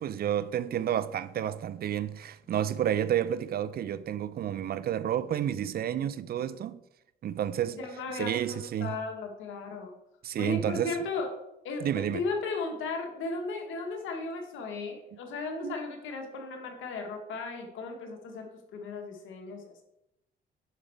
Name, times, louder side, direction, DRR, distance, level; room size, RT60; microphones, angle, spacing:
voice 1, 0.0-6.8 7.2-7.8 8.2-9.0 10.2-11.1 11.8-12.2 15.6-15.7, right 10 dB, 50° right, 0.4 m, -30 dB
voice 2, 7.7-9.9 10.4-11.3 11.6-19.8, left 4 dB, 85° left, 1.3 m, -36 dB
7.3 x 5.2 x 3.4 m
cardioid pair, 90°, 20 cm